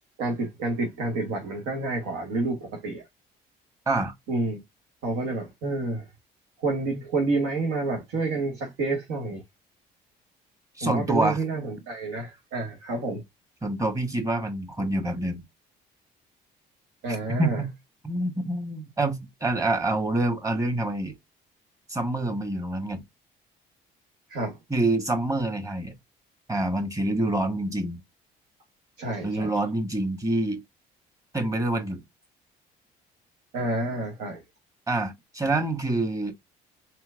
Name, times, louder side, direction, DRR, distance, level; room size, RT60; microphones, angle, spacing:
voice 1, 0.2-3.0 4.3-4.6 5.0-6.1 6.6-9.4 10.8-13.2 17.0-17.6 24.3-24.6 29.0-29.5 33.5-34.4, right 2 dB, 85° right, 1.4 m, -29 dB
voice 2, 10.8-11.4 13.6-15.4 17.1-17.7 18.0-21.1 21.9-23.0 24.7-25.9 26.5-28.0 29.2-30.6 31.3-32.0 34.9-36.3, right 2 dB, 20° right, 1.4 m, -26 dB
4.4 x 4.0 x 2.5 m
cardioid pair, 110°, 17 cm